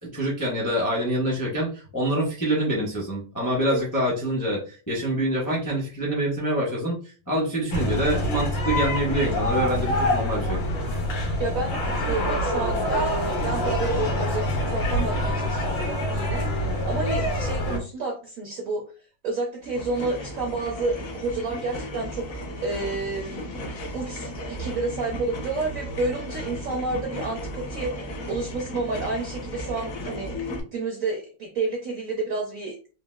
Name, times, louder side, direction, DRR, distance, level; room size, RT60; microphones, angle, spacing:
voice 1, 0.0-7.0 7.3-10.6, right 1 dB, 20° left, -3 dB, 0.5 m, -26 dB
sound 1, 7.7-17.8, left 1 dB, 80° left, 1.7 m, -26 dB
voice 2, 11.4-18.8 19.2-23.4 23.9-32.7, right 3 dB, 70° right, 1 dB, 0.8 m, -30 dB
sound 2, 19.6-30.6, equal, 55° left, 1.0 m, -35 dB
3.9 x 2.4 x 2.3 m, 0.36 s
omnidirectional pair, 2.1 m